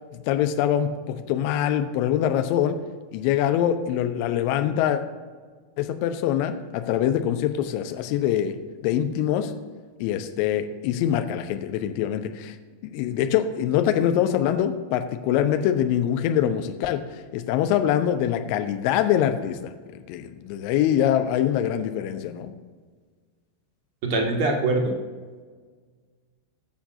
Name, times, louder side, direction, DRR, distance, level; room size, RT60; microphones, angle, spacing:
voice 1, 0.1-2.8 3.1-5.0 5.8-9.5 10.0-12.5 12.9-17.0 17.3-22.5, left 10 dB, 45° left, 8 dB, 0.9 m, -24 dB
voice 2, 24.0-25.0, right 2 dB, 45° right, 2 dB, 1.9 m, -23 dB
19.0 x 7.1 x 2.7 m, 1.5 s
figure-of-eight pair, 90°, 0 cm